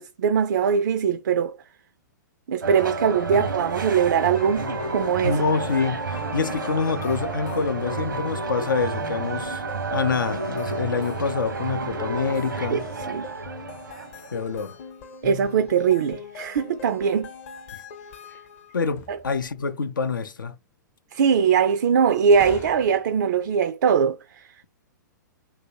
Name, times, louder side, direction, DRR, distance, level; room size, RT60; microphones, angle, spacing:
voice 1, 0.0-1.6 2.5-5.4 12.7-12.8 13.1-13.3 15.2-17.3 19.1-19.2 21.1-24.5, right 7 dB, 65° right, 0.4 m, -21 dB
sound 1, 2.6-14.6, right 3 dB, 85° right, 0.8 m, -31 dB
sound 2, 4.1-18.8, left 6 dB, 50° left, 0.8 m, -41 dB
voice 2, 5.2-9.6 9.9-12.8 14.3-14.8 18.7-20.5, left 5 dB, 85° left, 0.4 m, -26 dB
sound 3, 18.9-19.8 22.3-23.4, left 7 dB, 25° left, 0.5 m, -42 dB
2.9 x 2.7 x 2.8 m
hypercardioid pair, 115°, 11 cm